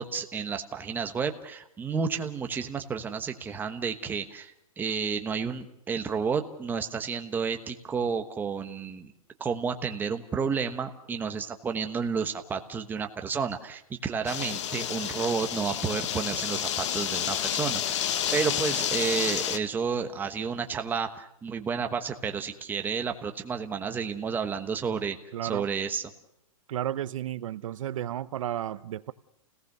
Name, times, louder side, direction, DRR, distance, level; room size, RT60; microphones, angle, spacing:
voice 1, 0.0-9.1 9.4-25.2 25.4-26.0, right 6 dB, 10° right, 6 dB, 1.1 m, -31 dB
sound 1, 14.3-19.6, left 10 dB, 55° left, 1.4 m, -30 dB
voice 2, 25.3-25.7 26.7-29.1, right 11 dB, 60° right, 15 dB, 0.8 m, -33 dB
29.0 x 18.0 x 6.7 m, 0.78 s
hypercardioid pair, 155°, 19 cm